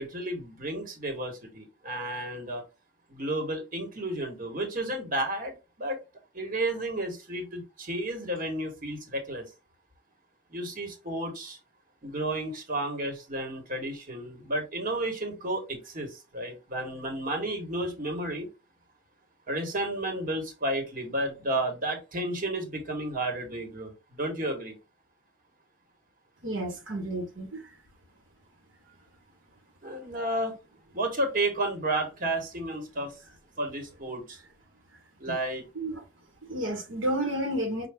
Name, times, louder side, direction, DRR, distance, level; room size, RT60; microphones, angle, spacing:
voice 1, 0.0-2.6 3.1-6.0 6.3-9.4 10.5-11.6 12.0-18.5 19.5-24.8 29.8-30.6 30.9-33.2 33.6-34.4 35.2-35.7, right 1 dB, 45° right, 1.3 m, -32 dB
voice 2, 26.4-27.6 35.3-35.4 35.7-35.9 36.4-37.9, right 1 dB, 75° right, 1.1 m, -31 dB
5.6 x 2.3 x 3.5 m
head